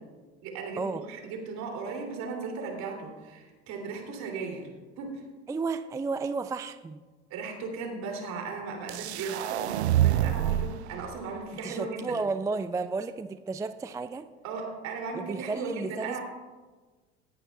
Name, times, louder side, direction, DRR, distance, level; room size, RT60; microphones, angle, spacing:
voice 1, 0.4-4.7 5.0-5.2 7.3-12.2 14.4-16.2, right 4 dB, 60° right, 1 dB, 3.0 m, -36 dB
voice 2, 5.5-7.0 11.6-14.3 15.1-16.2, right 4 dB, 10° right, 11 dB, 0.3 m, -32 dB
sound 1, 8.9-10.8, right 12 dB, 85° right, 0.5 m, -26 dB
18.0 x 10.5 x 2.4 m, 1.3 s
hypercardioid pair, 70°, 32 cm